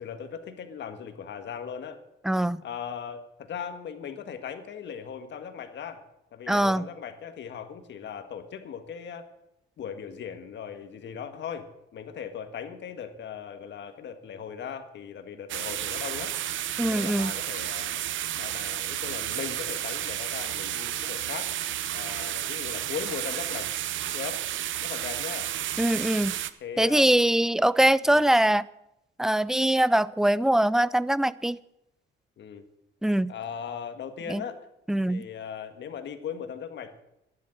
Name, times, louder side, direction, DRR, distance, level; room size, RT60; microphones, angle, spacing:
voice 1, 0.0-2.0 2.6-6.1 6.3-9.3 9.8-11.7 11.9-16.3 16.8-18.1 18.4-21.5 21.9-23.7 24.1-24.4 24.8-25.5 26.6-27.1 28.0-28.2 32.4-32.6 33.3-34.6 35.1-37.0, left 7 dB, 65° left, 1.8 m, -38 dB
voice 2, 2.2-2.6 6.5-6.9 16.8-17.3 25.8-26.3 26.8-28.7 29.2-31.6 33.0-33.3 34.3-34.4 34.9-35.2, right 1 dB, ahead, 0.4 m, -22 dB
sound 1, 15.5-26.5, right 12 dB, 75° right, 0.8 m, -32 dB
12.0 x 10.5 x 7.8 m
cardioid pair, 90°, 20 cm